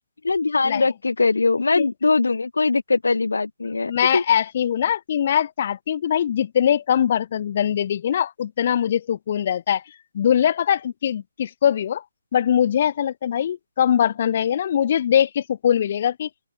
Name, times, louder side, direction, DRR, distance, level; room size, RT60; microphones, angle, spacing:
voice 1, 0.2-4.2, left 3 dB, 90° left, 1.5 m, -21 dB
voice 2, 3.9-9.8 10.1-12.0 12.3-16.3, left 9 dB, 45° left, 0.9 m, -22 dB
open air
hypercardioid pair, 155°, 0 cm